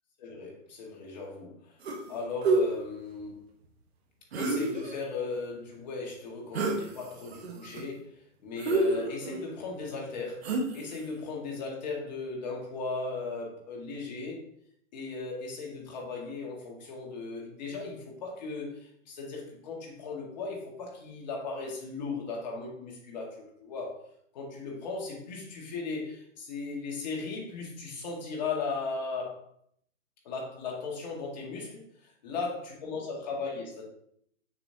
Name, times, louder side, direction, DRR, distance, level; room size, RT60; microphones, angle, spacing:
voice 1, 0.2-1.5 2.1-3.4 4.4-14.4 14.9-24.0 24.3-29.4 30.3-33.8, left 4 dB, 35° left, -2 dB, 1.8 m, -37 dB
sound 1, 1.8-2.1 2.4-2.6 4.3-5.0 6.5-6.8 7.3-7.8 8.6-9.4 10.4-10.9, right 3 dB, 55° right, 1.3 m, -28 dB
7.0 x 5.3 x 2.8 m, 0.68 s
hypercardioid pair, 165°, 39 cm